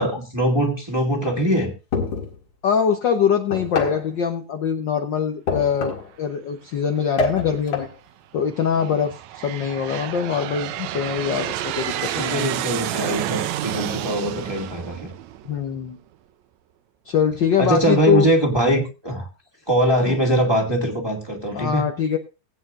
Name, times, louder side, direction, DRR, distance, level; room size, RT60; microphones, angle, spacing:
voice 1, 0.0-1.7 8.7-8.9 11.9-15.1 17.6-19.3 19.7-21.8, right 1 dB, 10° right, 1 dB, 1.7 m, -22 dB
sound 1, 1.9-2.4 3.5-4.1 5.5-6.1 7.2-7.9, left 4 dB, 55° left, 2.7 m, -26 dB
voice 2, 2.6-5.9 6.2-7.9 8.3-9.2 9.4-12.5 15.4-16.0 17.0-18.3 20.1-20.2 21.5-22.2, left 7 dB, 70° left, 5 dB, 1.0 m, -23 dB
Aircraft, 7.1-7.6 8.3-15.9, right 12 dB, 75° right, 1.9 m, -30 dB
20.0 x 9.0 x 2.5 m, 0.30 s
omnidirectional pair, 3.4 m